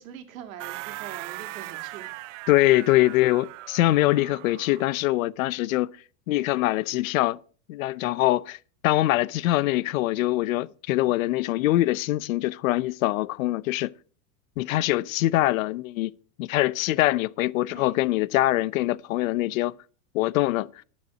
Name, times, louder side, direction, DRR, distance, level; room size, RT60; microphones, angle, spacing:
voice 1, 0.0-2.1 17.7-18.0, right 9 dB, 80° right, 2.3 m, -43 dB
sound 1, 0.6-5.0, right 18 dB, 65° right, 0.5 m, -39 dB
voice 2, 2.5-5.9 6.3-7.4 7.7-8.6 8.8-13.9 14.6-16.1 16.4-19.7 20.1-20.7, left 17 dB, 80° left, 0.7 m, -23 dB
12.5 x 7.5 x 6.1 m
supercardioid pair, 180°, 40 cm